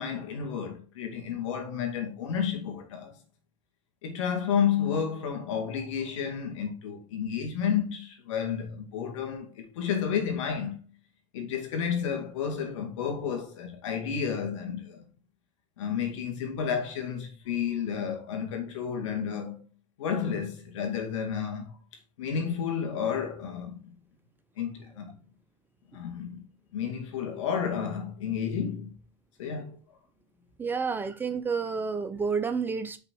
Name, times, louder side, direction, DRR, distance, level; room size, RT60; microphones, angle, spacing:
voice 1, 0.0-3.2 4.0-10.8 11.3-15.0 15.8-19.6 20.0-21.7 22.2-23.9 24.6-25.1 25.9-26.5 26.7-28.9 29.4-29.8, left 7 dB, 80° left, 2.2 m, -31 dB
voice 2, 30.6-33.0, right 5 dB, 15° right, 0.5 m, -30 dB
5.6 x 4.1 x 5.3 m
supercardioid pair, 140°, 16 cm